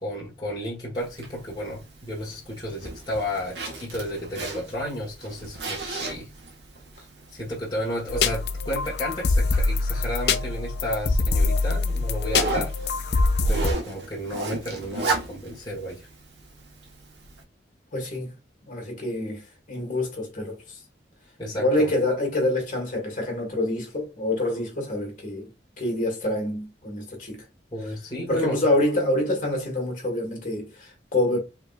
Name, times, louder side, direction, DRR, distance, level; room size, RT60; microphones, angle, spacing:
voice 1, 0.0-6.3 7.3-12.7 13.5-16.1 21.4-21.9 27.7-28.6, equal, 25° left, 1.7 m, -32 dB
Zipper (clothing), 1.0-17.4, right 2 dB, 75° right, 1.3 m, -36 dB
sound 1, 8.1-13.7, left 3 dB, 65° left, 0.5 m, -24 dB
voice 2, 17.9-18.4 18.7-20.8 21.5-25.5 25.8-27.4 28.3-31.4, left 1 dB, 45° left, 1.8 m, -26 dB
5.0 x 3.5 x 2.5 m
head